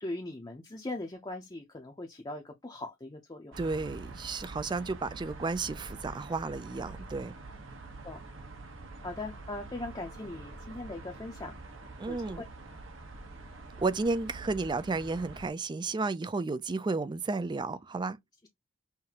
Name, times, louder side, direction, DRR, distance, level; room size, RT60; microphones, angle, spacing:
voice 1, 0.0-3.5 8.0-8.2 9.0-11.6 12.1-12.4, left 2 dB, 20° left, 0.6 m, -40 dB
sound 1, 3.5-15.5, right 2 dB, 65° right, 1.1 m, -46 dB
voice 2, 3.6-7.4 12.0-12.4 13.8-18.2, right 3 dB, 20° right, 0.4 m, -32 dB
5.7 x 2.6 x 2.8 m
head